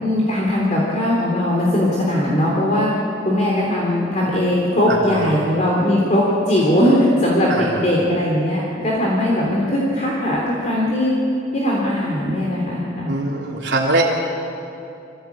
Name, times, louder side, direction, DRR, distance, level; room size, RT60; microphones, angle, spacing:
voice 1, 0.0-2.9 3.3-7.5 7.8-11.1 11.5-13.1, left 1 dB, 40° left, -4 dB, 3.5 m, -19 dB
voice 2, 4.9-5.3 7.5-7.9 13.1-14.0, right 2 dB, 70° right, -3 dB, 3.1 m, -22 dB
25.5 x 16.5 x 8.7 m, 2.7 s
head